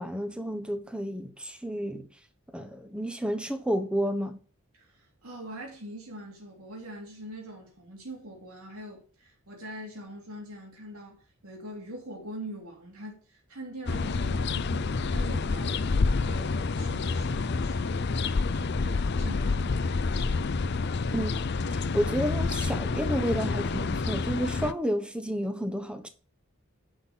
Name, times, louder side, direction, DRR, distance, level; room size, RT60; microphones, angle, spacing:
voice 1, 0.0-2.1 2.5-4.4 21.1-21.3 21.7-26.1, equal, 5° right, 1.0 m, -31 dB
voice 2, 4.7-15.8 16.2-18.1 18.5-20.6, right 1 dB, 90° right, 3.1 m, -43 dB
sound 1, 13.9-24.7, left 4 dB, 50° left, 0.5 m, -28 dB
10.5 x 5.9 x 5.6 m
head